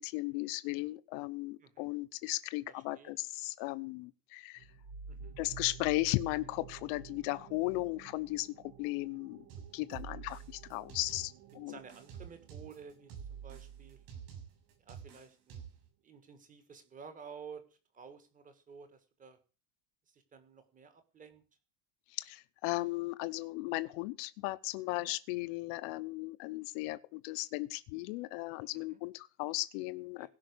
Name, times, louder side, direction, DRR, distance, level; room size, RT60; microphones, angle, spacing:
voice 1, 0.0-4.6 5.4-9.4 9.7-11.8 22.1-30.3, left 20 dB, 50° left, 0.9 m, -36 dB
voice 2, 2.7-3.1 5.1-5.3 11.7-14.0 14.8-15.7 16.0-17.6 17.9-19.4 20.1-21.4 25.0-25.1 28.9-29.0 30.2-30.3, right 6 dB, 15° right, 1.7 m, -52 dB
sound 1, 4.6-13.9, right 6 dB, 70° right, 2.9 m, -52 dB
sound 2, 9.5-11.5 11.9-15.9, right 8 dB, 45° right, 7.1 m, -48 dB
17.0 x 5.7 x 8.4 m
cardioid pair, 175°, 49 cm